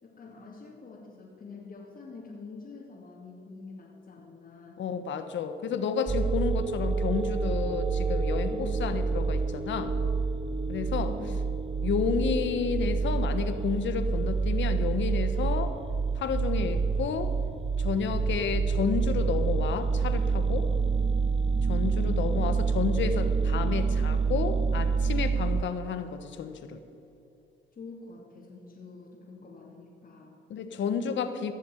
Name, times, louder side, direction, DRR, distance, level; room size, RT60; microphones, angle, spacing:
voice 1, 0.0-4.8 8.5-8.9 11.0-11.3 22.0-22.3 27.7-30.3, left 4 dB, 45° left, -6 dB, 2.8 m, -45 dB
voice 2, 4.8-10.0 10.7-11.1 11.8-15.7 16.2-17.3 17.8-20.7 21.7-26.8 30.5-31.5, left 6 dB, 70° left, 9 dB, 1.4 m, -31 dB
sound 1, 6.1-25.6, right 4 dB, 25° right, 0.8 m, -27 dB
16.0 x 7.2 x 9.2 m, 2.8 s
cardioid pair, 90°, 20 cm